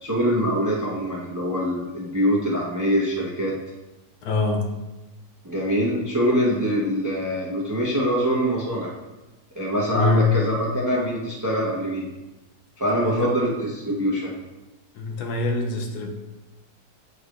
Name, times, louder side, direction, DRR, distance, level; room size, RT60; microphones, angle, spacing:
voice 1, 0.0-3.6 5.4-8.9 9.6-12.1 12.8-14.3, equal, 20° right, -4 dB, 0.5 m, -24 dB
voice 2, 4.2-4.7 9.9-10.3 13.0-13.4 14.9-16.1, left 3 dB, 70° left, 2 dB, 1.2 m, -24 dB
7.9 x 4.8 x 2.5 m, 1.1 s
omnidirectional pair, 1.8 m